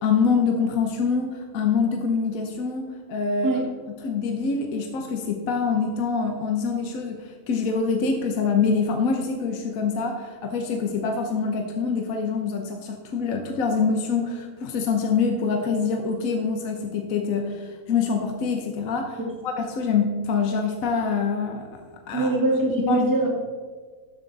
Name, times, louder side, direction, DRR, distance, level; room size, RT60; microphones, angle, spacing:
voice 1, 0.0-3.5 4.0-22.3 22.9-23.1, left 5 dB, 65° left, 4 dB, 1.3 m, -25 dB
voice 2, 22.1-23.3, right 2 dB, 15° right, -2 dB, 1.9 m, -22 dB
12.5 x 7.3 x 4.0 m, 1.5 s
omnidirectional pair, 1.6 m